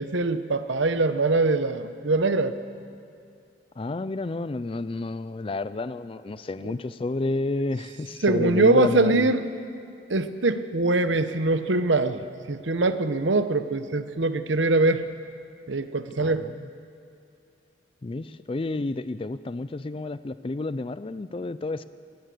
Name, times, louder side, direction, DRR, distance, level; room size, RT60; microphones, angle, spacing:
voice 1, 0.0-2.5 8.2-9.4 10.1-15.0 15.7-16.4, right 2 dB, 75° right, 10 dB, 1.0 m, -23 dB
voice 2, 3.8-9.3 16.2-16.7 18.0-21.9, left 2 dB, 30° left, 14 dB, 0.4 m, -30 dB
18.5 x 18.5 x 7.8 m, 2.4 s
head